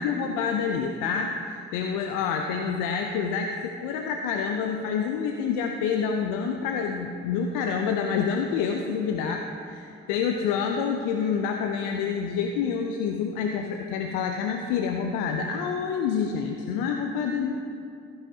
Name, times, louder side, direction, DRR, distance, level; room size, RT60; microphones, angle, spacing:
voice 1, 0.0-17.5, left 6 dB, 80° left, 4 dB, 0.6 m, -27 dB
14.5 x 10.5 x 2.8 m, 2.5 s
hypercardioid pair, 40°, 31 cm